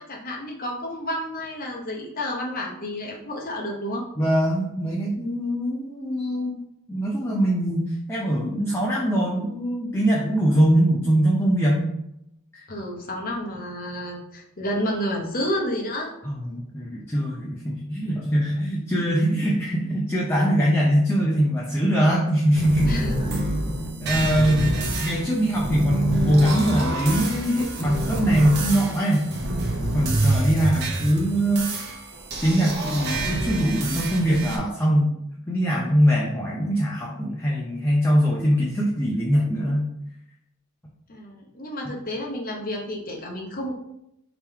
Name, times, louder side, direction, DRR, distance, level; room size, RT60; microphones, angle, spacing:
voice 1, 0.0-4.0 12.7-16.1 22.8-23.5 24.6-24.8 30.0-30.3 41.1-43.7, equal, 40° left, 0 dB, 0.8 m, -30 dB
voice 2, 4.2-6.6 6.9-12.0 12.5-12.6 16.2-22.9 24.0-29.2 29.9-31.7 32.4-35.2 35.5-39.9, equal, 10° left, -4 dB, 0.5 m, -22 dB
sound 1, 22.6-34.6, right 1 dB, 50° right, 0.8 m, -27 dB
3.6 x 3.0 x 4.6 m, 0.81 s
head